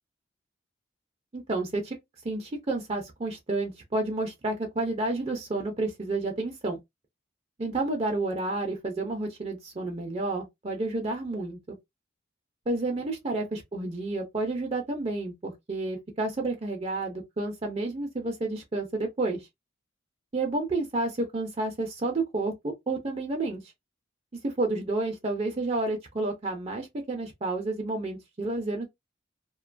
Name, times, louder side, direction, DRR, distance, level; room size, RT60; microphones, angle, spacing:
voice 1, 1.3-1.9 2.2-6.8 7.6-11.8 12.7-19.5 20.3-23.6 24.4-28.9, right 2 dB, 30° right, 0.5 m, -30 dB
2.5 x 2.2 x 2.5 m
head